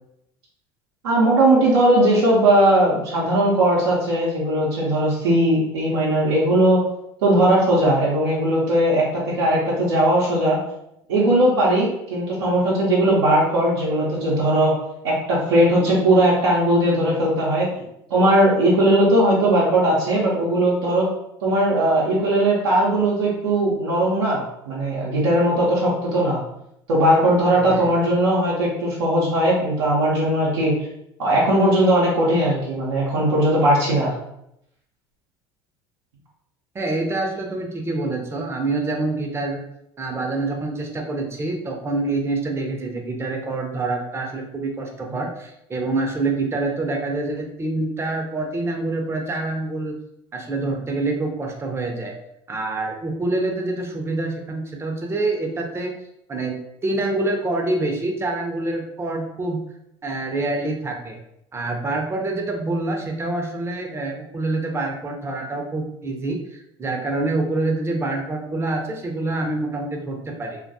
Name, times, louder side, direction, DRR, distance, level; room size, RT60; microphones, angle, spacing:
voice 1, 1.0-6.9 7.2-10.6 11.1-14.7 15.0-17.7 18.1-21.1 21.4-26.4 26.9-30.7 31.2-34.2, right 1 dB, 80° right, -6 dB, 0.6 m, -18 dB
voice 2, 27.5-27.9 36.7-39.6 40.0-49.9 50.3-52.1 52.5-55.9 56.3-56.5 56.8-59.6 60.0-61.2 61.5-70.6, right 2 dB, 20° right, 2 dB, 0.5 m, -26 dB
2.2 x 2.2 x 2.6 m, 0.79 s
hypercardioid pair, 75°, 13 cm